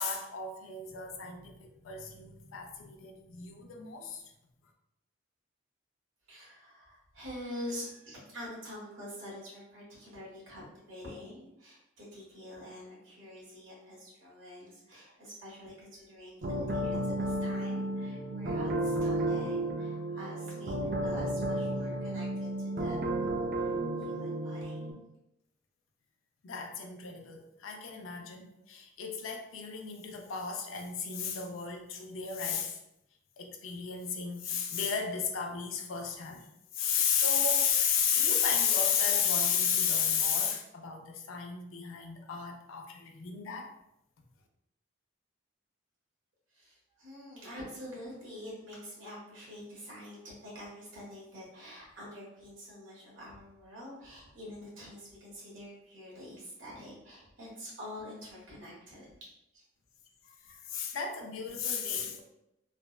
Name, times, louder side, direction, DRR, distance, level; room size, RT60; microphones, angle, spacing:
voice 1, 0.0-4.2 26.4-32.8 33.4-36.5 36.7-43.7 60.5-62.2, left 7 dB, 90° left, 4 dB, 0.5 m, -32 dB
voice 2, 6.3-23.0 23.5-24.8 46.5-59.1 59.5-59.6, left 1 dB, 75° right, -6 dB, 1.3 m, -46 dB
sound 1, 16.4-24.9, right 1 dB, 50° right, 0.4 m, -32 dB
3.3 x 2.1 x 2.3 m, 0.84 s
head